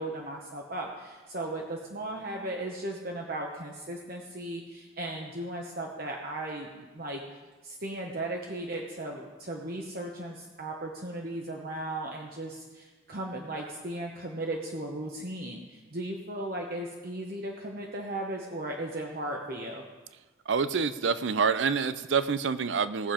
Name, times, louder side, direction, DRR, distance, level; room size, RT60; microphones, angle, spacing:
voice 1, 0.0-7.2 7.6-19.8, right 1 dB, 50° right, 0 dB, 1.1 m, -36 dB
voice 2, 20.5-23.1, right 5 dB, 80° right, 13 dB, 0.6 m, -27 dB
18.5 x 7.4 x 5.1 m, 1.3 s
head